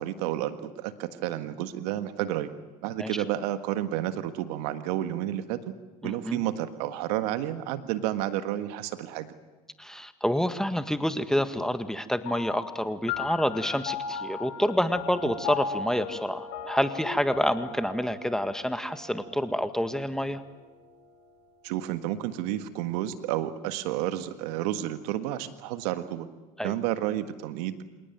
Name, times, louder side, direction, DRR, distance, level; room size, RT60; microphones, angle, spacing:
voice 1, 0.0-2.5 2.8-5.6 6.0-9.3 21.6-26.3 26.6-27.8, right 13 dB, 75° right, 10 dB, 1.6 m, -31 dB
voice 2, 6.0-6.4 9.8-20.4 26.6-26.7, equal, ahead, 9 dB, 1.8 m, -28 dB
sound 1, 12.3-21.1, left 6 dB, 65° left, 6.1 m, -38 dB
27.0 x 19.0 x 9.3 m, 1.2 s
hypercardioid pair, 70°, 21 cm